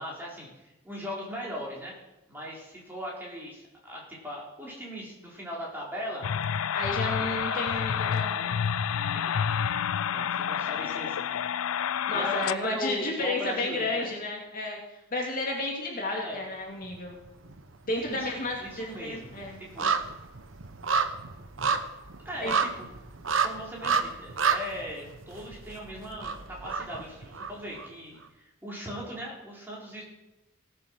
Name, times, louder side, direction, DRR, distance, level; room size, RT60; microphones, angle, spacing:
voice 1, 0.0-1.9 2.3-6.3 7.0-8.5 9.2-9.3 10.1-11.4 11.7-14.1 16.1-16.4 17.9-18.3 18.6-19.3 19.7-19.9 22.2-23.0 23.4-30.0, equal, 10° right, -4 dB, 4.1 m, -39 dB
sound 1, 6.2-12.6, left 8 dB, 90° left, 0.4 m, -29 dB
voice 2, 6.7-8.5 12.1-14.8 15.1-17.2 17.9-19.9 22.4-22.5, left 2 dB, 45° left, 0 dB, 2.5 m, -32 dB
sound 2, 16.8-17.6 17.9-27.9 28.2-28.3, right 5 dB, 65° right, 1.0 m, -31 dB
18.0 x 6.9 x 6.4 m, 0.96 s
head